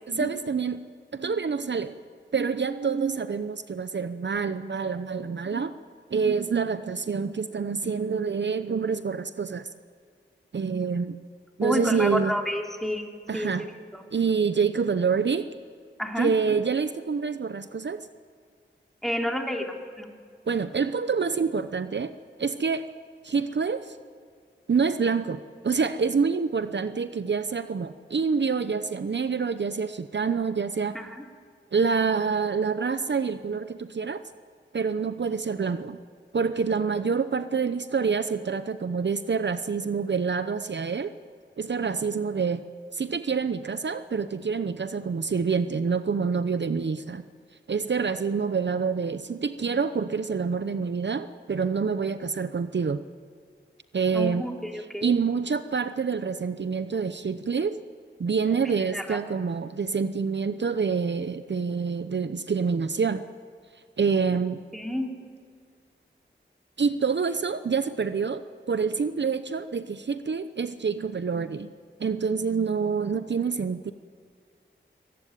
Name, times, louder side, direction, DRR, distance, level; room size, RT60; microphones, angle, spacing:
voice 1, 0.1-0.8 1.1-2.0 2.3-5.7 6.1-9.7 10.5-11.2 11.6-12.4 13.3-13.7 14.1-15.5 16.2-18.1 20.5-22.1 22.4-22.9 23.2-24.0 24.7-31.0 31.7-34.2 34.7-36.0 36.3-41.1 41.6-42.7 42.9-47.3 47.7-53.0 53.9-54.5 54.7-57.8 58.2-63.2 64.0-64.6 66.8-71.7 72.0-73.9, right 5 dB, 60° right, 11 dB, 0.8 m, -27 dB
voice 2, 11.6-13.1 13.3-13.5 16.0-16.3 19.0-20.1 30.9-31.2 54.1-55.2 58.9-59.2 64.7-65.1, equal, ahead, 2 dB, 3.2 m, -30 dB
22.5 x 20.0 x 9.3 m, 2.1 s
wide cardioid pair, 65°, 20 cm